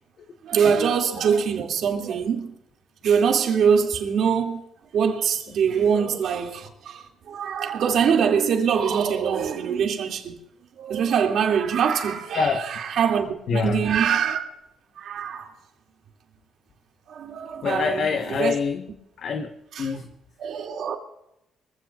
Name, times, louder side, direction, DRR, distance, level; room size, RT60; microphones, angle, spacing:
voice 1, 0.4-2.5 3.0-4.6 4.9-10.4 10.8-12.5 12.8-14.5 15.0-15.5 17.1-18.5 19.8-19.9 20.4-21.0, right 7 dB, 70° right, 2.6 m, -23 dB
voice 2, 12.3-12.8 13.5-13.9 17.6-18.9 19.2-19.5 19.8-20.1, left 5 dB, 60° left, 1.2 m, -25 dB
24.5 x 16.0 x 2.5 m
cardioid pair, 90°, 0 cm